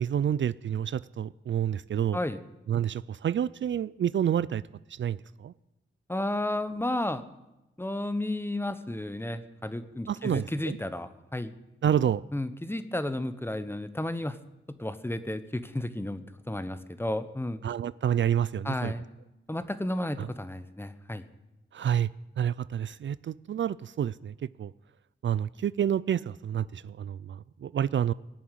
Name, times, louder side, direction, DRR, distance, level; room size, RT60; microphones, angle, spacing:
voice 1, 0.0-2.2 2.7-4.6 4.9-5.5 10.1-10.8 11.8-12.2 17.6-18.9 20.2-20.3 21.7-22.1 22.4-24.7 25.2-28.1, right 9 dB, 65° right, 19 dB, 0.4 m, -29 dB
voice 2, 6.1-7.2 7.8-11.5 12.0-14.4 14.8-17.6 18.6-19.0 19.5-21.2, left 1 dB, 10° left, 11 dB, 1.0 m, -32 dB
17.5 x 7.1 x 9.2 m, 0.95 s
cardioid pair, 65°, 21 cm